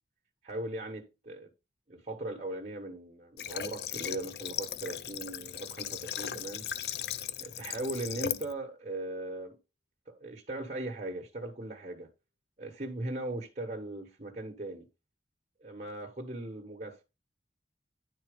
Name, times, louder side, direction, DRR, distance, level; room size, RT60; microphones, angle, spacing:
voice 1, 0.4-1.5 1.9-6.6 7.4-9.6 10.1-12.1 12.6-14.9 15.6-17.0, right 2 dB, 40° right, 1.2 m, -39 dB
Water / Water tap faucet, 3.4-8.5, left 9 dB, 65° left, 0.5 m, -37 dB
10.0 x 4.3 x 5.0 m
head